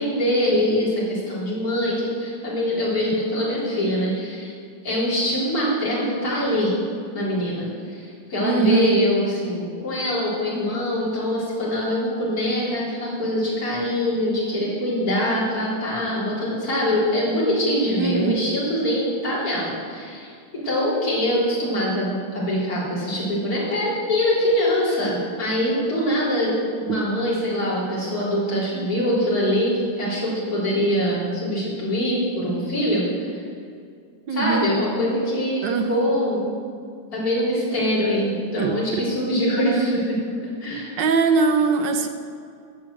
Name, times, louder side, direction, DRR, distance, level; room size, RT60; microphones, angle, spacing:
voice 1, 0.0-4.5 4.8-6.8 7.1-33.4 34.3-36.4 37.1-40.2 40.6-40.9, equal, 45° left, -7 dB, 4.3 m, -23 dB
voice 2, 8.4-9.0 18.0-18.5 26.9-27.0 34.3-34.7 35.6-36.0 38.6-38.8 39.6-40.0 41.0-42.1, right 5 dB, 65° right, 6 dB, 1.4 m, -21 dB
11.5 x 7.9 x 7.6 m, 2.3 s
omnidirectional pair, 2.3 m